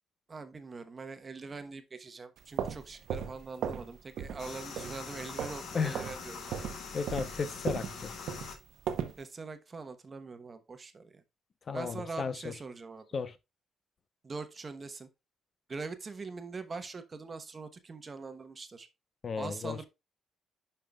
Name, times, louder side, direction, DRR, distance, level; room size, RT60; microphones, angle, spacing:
voice 1, 0.3-6.6 9.2-11.2 11.7-13.0 14.2-15.1 15.7-18.9 19.4-19.8, right 4 dB, 35° right, 1.0 m, -43 dB
sound 1, 2.4-3.9 4.2-4.5 4.8-5.6 5.9-6.2 6.5-9.2, right 8 dB, 75° right, 0.9 m, -36 dB
sound 2, 4.4-8.6, left 5 dB, 75° left, 1.9 m, -43 dB
voice 2, 5.7-6.1 6.9-8.1 11.7-12.5 13.1-13.4 19.2-19.8, left 5 dB, 45° left, 0.8 m, -34 dB
10.0 x 5.6 x 2.3 m
cardioid pair, 90°, 0 cm